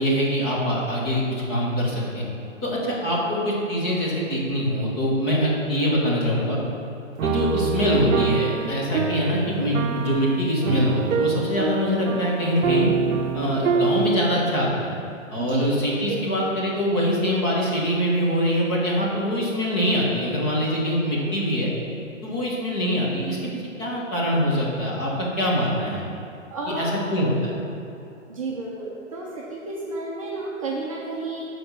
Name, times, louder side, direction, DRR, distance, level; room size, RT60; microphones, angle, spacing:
voice 1, 0.0-2.2 2.6-6.6 7.2-12.9 13.3-14.9 15.3-21.7 22.2-26.0 26.8-27.6, equal, 20° left, -5 dB, 1.2 m, -24 dB
sound 1, 7.2-14.6, right 6 dB, 90° right, 0.6 m, -25 dB
voice 2, 15.4-15.7 16.1-16.2 26.5-27.0 28.3-31.5, right 3 dB, 25° right, -5 dB, 0.7 m, -31 dB
7.0 x 4.7 x 6.6 m, 2.8 s
hypercardioid pair, 165°, 39 cm